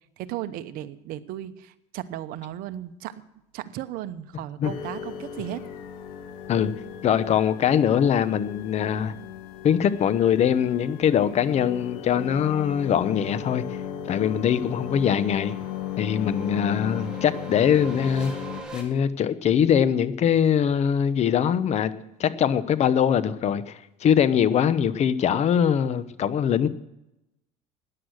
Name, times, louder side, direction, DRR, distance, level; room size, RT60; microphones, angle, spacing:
voice 1, 0.2-3.2 3.5-5.7, right 12 dB, 65° right, 11 dB, 0.9 m, -35 dB
sound 1, 4.6-18.6, left 9 dB, 75° left, 1.8 m, -36 dB
voice 2, 7.0-9.1 9.6-13.6 14.1-15.5 16.0-18.3 18.7-21.9 22.2-26.7, left 8 dB, 45° left, 15 dB, 0.9 m, -22 dB
sound 2, 12.8-18.8, right 2 dB, 5° right, 3.7 m, -44 dB
14.5 x 10.0 x 6.4 m, 0.90 s
supercardioid pair, 105°, 16 cm